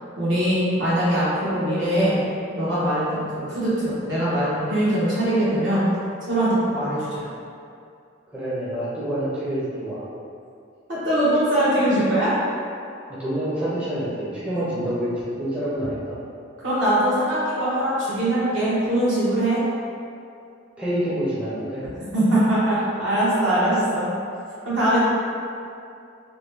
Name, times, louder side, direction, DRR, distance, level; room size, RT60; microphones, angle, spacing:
voice 1, 0.2-2.2 2.5-5.8 6.3-7.2 10.9-12.3 16.6-19.6 22.1-24.1 24.6-25.0, right 1 dB, 65° right, -10 dB, 1.1 m, -22 dB
voice 2, 8.3-10.1 13.1-15.1 15.4-16.2 20.8-21.8, right 1 dB, 5° right, -11 dB, 0.4 m, -27 dB
3.0 x 2.2 x 3.3 m, 2.5 s
head